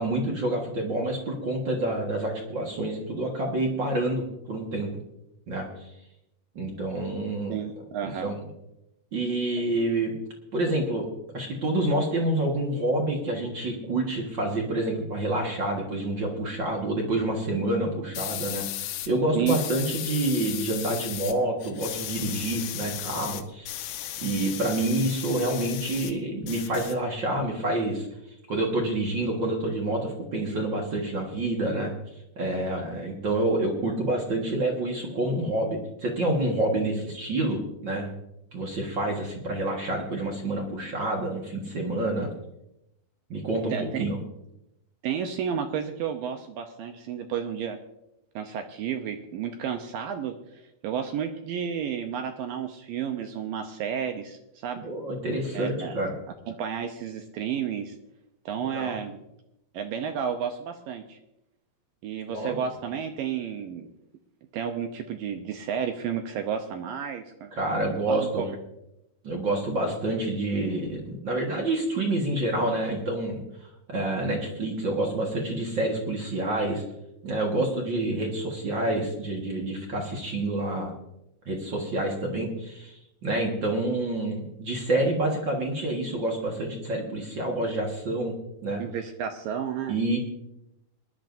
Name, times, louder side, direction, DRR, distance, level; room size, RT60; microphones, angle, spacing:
voice 1, 0.0-5.0 5.5-5.9 6.5-7.6 8.2-8.4 9.1-10.1 10.5-11.0 11.3-28.1 28.5-31.9 32.3-38.1 38.5-42.3 43.3-44.2 54.8-56.1 58.7-59.0 62.3-62.5 67.5-68.5 69.2-73.4 73.9-76.8 77.2-80.9 81.4-88.3 88.6-88.8 89.9-90.2, right 1 dB, 60° right, 0 dB, 1.2 m, -28 dB
voice 2, 7.5-8.3 19.3-19.6 43.7-44.0 45.0-47.8 48.4-54.9 55.5-56.0 56.5-57.9 58.5-59.2 59.7-61.2 62.0-63.9 64.5-67.5 68.1-68.5 88.8-90.0, right 8 dB, 80° right, 6 dB, 2.1 m, -31 dB
sound 1, 18.2-19.1 19.5-21.4 21.6-26.1 26.4-27.4, left 13 dB, 90° left, 2.9 m, -35 dB
22.0 x 11.0 x 2.6 m, 0.85 s
omnidirectional pair, 4.7 m